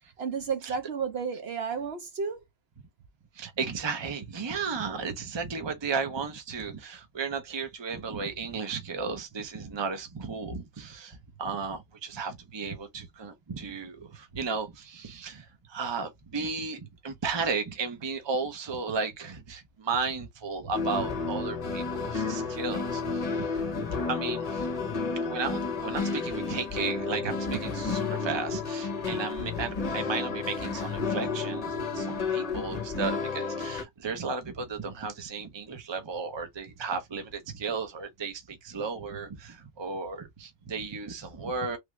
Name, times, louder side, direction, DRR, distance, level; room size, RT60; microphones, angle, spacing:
voice 1, 0.2-2.4, right 6 dB, 65° right, 0.9 m, -32 dB
voice 2, 3.4-23.7 24.1-24.7 25.2-41.8, right 5 dB, 30° right, 0.7 m, -34 dB
sound 1, 20.7-33.8, left 4 dB, 40° left, 0.8 m, -31 dB
3.3 x 2.4 x 3.0 m
omnidirectional pair, 1.2 m